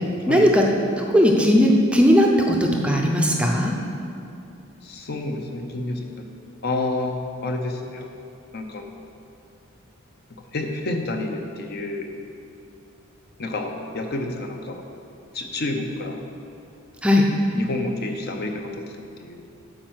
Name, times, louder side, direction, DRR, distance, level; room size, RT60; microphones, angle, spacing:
voice 1, 0.3-0.6 1.0-3.7 17.0-17.3, equal, 5° right, 0 dB, 0.5 m, -17 dB
voice 2, 4.8-6.2 6.6-8.3 8.5-9.0 10.5-12.1 13.4-14.8 15.3-16.2 17.5-19.4, left 2 dB, 45° left, 4 dB, 0.7 m, -29 dB
8.9 x 4.6 x 6.2 m, 2.6 s
head